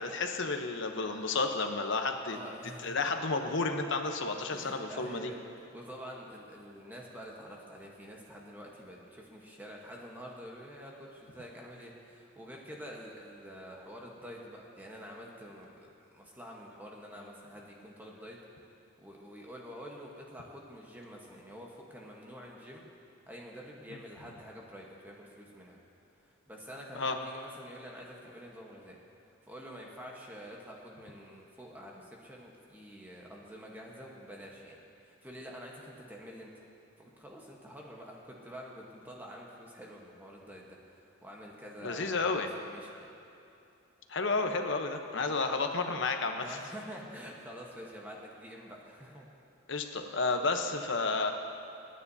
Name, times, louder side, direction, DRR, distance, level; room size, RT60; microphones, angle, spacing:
voice 1, 0.0-2.4 2.8-5.3 26.9-27.2 41.8-42.5 44.1-46.6 49.7-51.3, left 3 dB, 65° left, 5 dB, 0.9 m, -31 dB
voice 2, 2.3-3.2 4.5-15.9 16.1-18.4 19.0-22.9 23.3-25.8 26.2-29.0 29.4-36.5 37.0-43.1 46.4-49.3, equal, 10° right, -2 dB, 1.2 m, -47 dB
26.5 x 9.7 x 2.8 m, 2.7 s
head